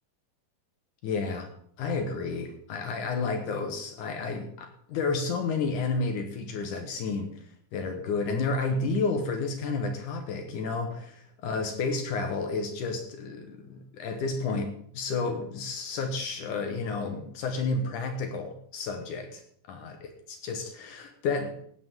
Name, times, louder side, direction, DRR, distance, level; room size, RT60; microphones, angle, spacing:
voice 1, 1.0-1.5 1.8-7.4 7.7-19.4 19.7-21.7, left 4 dB, 65° left, 5 dB, 2.4 m, -31 dB
16.5 x 8.9 x 3.6 m, 0.63 s
omnidirectional pair, 4.2 m